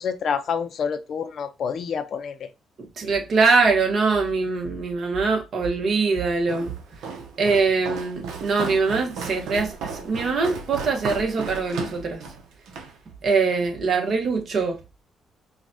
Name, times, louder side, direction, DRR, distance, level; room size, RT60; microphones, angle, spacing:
voice 1, 0.0-2.5, left 6 dB, 60° left, 0.6 m, -28 dB
voice 2, 3.0-6.7 7.4-12.2 13.2-14.8, right 4 dB, 55° right, 1.1 m, -23 dB
Walk footsteps, 6.5-13.0, right 5 dB, 85° right, 0.8 m, -35 dB
4.8 x 2.3 x 2.7 m
cardioid pair, 90°, 0 cm